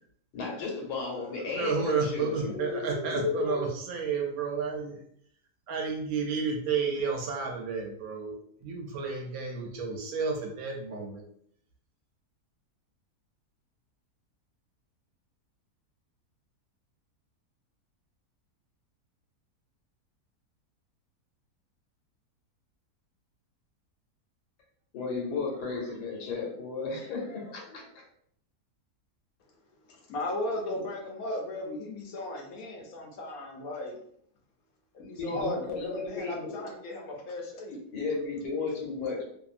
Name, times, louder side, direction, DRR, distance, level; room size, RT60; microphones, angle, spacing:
voice 1, 0.3-3.6 24.9-28.0 35.2-36.6 37.9-39.2, left 4 dB, 85° left, 0 dB, 1.4 m, -34 dB
voice 2, 1.2-5.0 5.7-11.2, right 5 dB, 70° right, 2 dB, 1.0 m, -31 dB
voice 3, 29.8-34.0 34.9-37.8, left 1 dB, 70° left, 1 dB, 1.0 m, -36 dB
2.7 x 2.6 x 2.4 m, 0.67 s
omnidirectional pair, 1.7 m